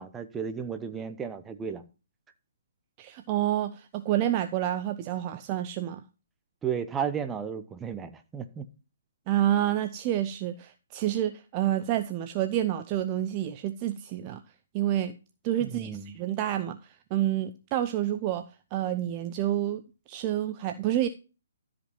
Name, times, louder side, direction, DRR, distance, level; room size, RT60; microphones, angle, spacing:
voice 1, 0.0-1.8 6.6-8.7 15.6-16.2, right 7 dB, 10° right, 1.0 m, -33 dB
voice 2, 3.0-6.0 9.3-14.4 14.7-15.1 15.4-16.8 17.1-18.4 18.7-19.8 20.1-21.1, right 12 dB, 30° right, 0.6 m, -28 dB
13.0 x 5.2 x 5.6 m
figure-of-eight pair, 135°, 0 cm